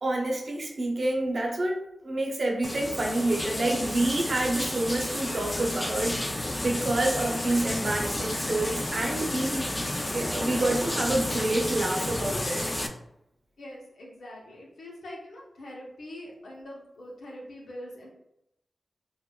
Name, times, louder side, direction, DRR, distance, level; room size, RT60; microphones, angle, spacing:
voice 1, 0.0-9.7 10.1-12.6, right 2 dB, 60° right, 0 dB, 0.8 m, -28 dB
sound 1, 2.6-12.9, left 1 dB, 25° left, 0.4 m, -31 dB
voice 2, 13.6-18.1, left 1 dB, 85° left, -3 dB, 0.9 m, -43 dB
4.5 x 2.4 x 2.3 m, 0.82 s
cardioid pair, 40°, 0 cm